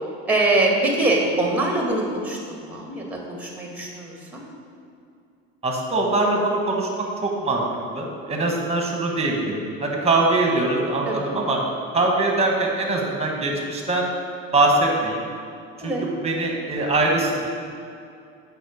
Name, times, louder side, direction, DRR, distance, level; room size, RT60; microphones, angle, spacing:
voice 1, 0.3-4.4 11.1-11.3 15.8-16.0, right 2 dB, 5° right, 0 dB, 1.8 m, -23 dB
voice 2, 5.6-6.9 7.2-7.6 7.9-11.6 11.9-14.0 14.5-15.2 15.8-15.9 16.2-17.4, right 2 dB, 20° right, 0 dB, 1.5 m, -22 dB
7.8 x 5.3 x 6.4 m, 2.4 s
cardioid pair, 120°, 30 cm